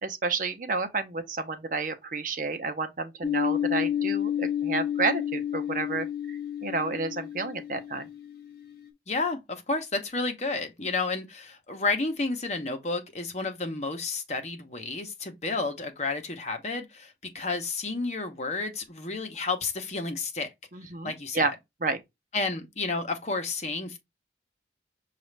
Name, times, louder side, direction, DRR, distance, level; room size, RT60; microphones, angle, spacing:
voice 1, 0.0-8.0 20.7-21.5 21.8-22.0, right 3 dB, 45° right, 0.7 m, -30 dB
sound 1, 3.2-8.7, left 10 dB, 55° left, 1.1 m, -30 dB
voice 2, 9.1-20.5 21.0-21.6 22.3-24.0, left 3 dB, 40° left, 0.9 m, -31 dB
6.2 x 2.5 x 3.2 m
head